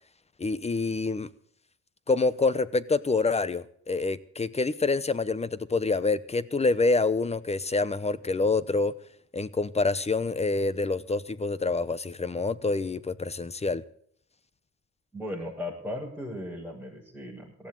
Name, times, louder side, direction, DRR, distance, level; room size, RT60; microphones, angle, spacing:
voice 1, 0.4-1.3 2.1-8.9 9.3-13.8, left 3 dB, 20° left, 0.9 m, -27 dB
voice 2, 15.1-17.7, left 1 dB, ahead, 7.0 m, -37 dB
18.5 x 14.5 x 4.0 m
cardioid pair, 90°, 30 cm